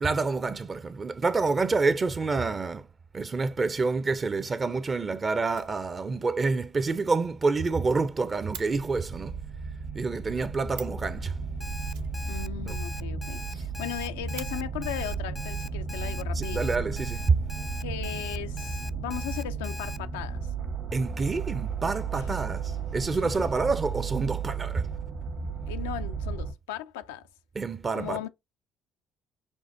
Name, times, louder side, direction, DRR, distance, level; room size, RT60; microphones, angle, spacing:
voice 1, 0.0-2.9 3.1-9.4 9.9-11.4 12.7-12.8 16.4-17.4 20.9-22.6 22.9-24.9 27.6-28.2, right 4 dB, 35° right, 0.5 m, -27 dB
Fire, 5.5-6.3 6.6-6.7 7.0-7.1 7.4-7.5 7.7-8.7 10.4-10.5 10.7-11.1 11.9-12.8 13.1-13.2 13.5-13.6 14.0-14.5 15.5-15.6 16.3-16.9, right 7 dB, 85° right, 0.8 m, -46 dB
sound 1, 8.1-26.5, right 5 dB, 65° right, 1.3 m, -34 dB
Alarm, 11.6-20.0, left 2 dB, 20° left, 0.4 m, -42 dB
voice 2, 12.3-16.6 17.8-20.5 22.3-22.4 23.2-23.5 25.7-27.3 27.9-28.3, left 11 dB, 85° left, 0.3 m, -37 dB
6.3 x 2.5 x 2.6 m
hypercardioid pair, 55°, 0 cm